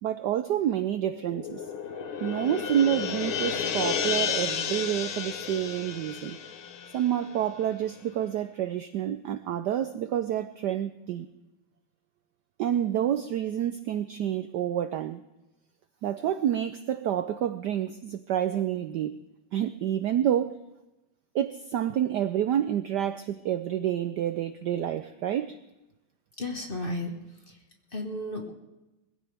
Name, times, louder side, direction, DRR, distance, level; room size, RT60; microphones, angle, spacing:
voice 1, 0.0-1.6 2.2-6.4 6.9-11.3 12.6-15.2 16.0-19.2 19.5-20.6 21.3-25.6, right 10 dB, 70° right, 11 dB, 1.0 m, -28 dB
sound 1, 1.2-7.8, left 7 dB, 75° left, 1.9 m, -32 dB
voice 2, 26.4-27.1 27.9-28.5, left 1 dB, 25° left, 2 dB, 1.7 m, -33 dB
22.0 x 15.0 x 3.5 m, 0.99 s
omnidirectional pair, 2.4 m